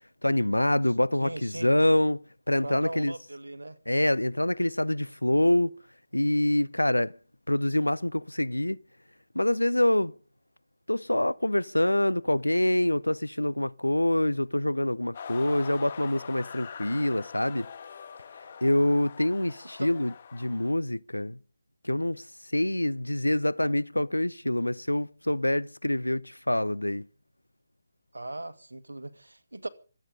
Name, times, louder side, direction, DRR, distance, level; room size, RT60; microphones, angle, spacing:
voice 1, 0.2-2.2 2.5-3.1 3.9-5.8 6.1-7.1 7.5-8.8 9.3-10.1 10.9-17.7 18.6-21.4 21.8-22.2 22.5-27.0, left 1 dB, 85° left, 0.7 m, -26 dB
voice 2, 1.2-1.7 2.6-3.8 19.8-19.9 28.1-29.7, right 2 dB, 75° right, 2.0 m, -38 dB
sound 1, 15.1-20.7, left 7 dB, 40° left, 1.9 m, -43 dB
25.0 x 9.2 x 5.2 m
figure-of-eight pair, 145°, 0 cm